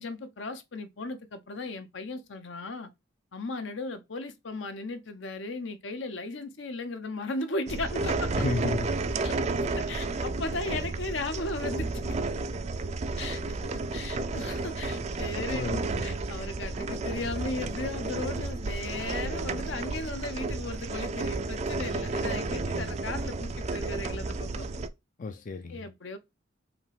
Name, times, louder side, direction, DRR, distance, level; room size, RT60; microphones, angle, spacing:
voice 1, 0.0-2.9 3.3-8.3 9.2-9.4 9.8-12.2 13.2-24.7 25.7-26.2, left 2 dB, 70° left, 0.8 m, -36 dB
sound 1, 7.7-24.9, right 3 dB, 35° right, 0.4 m, -32 dB
voice 2, 8.3-9.1 15.3-16.1 25.2-25.9, left 2 dB, 40° left, 0.4 m, -33 dB
5.0 x 3.0 x 3.3 m
head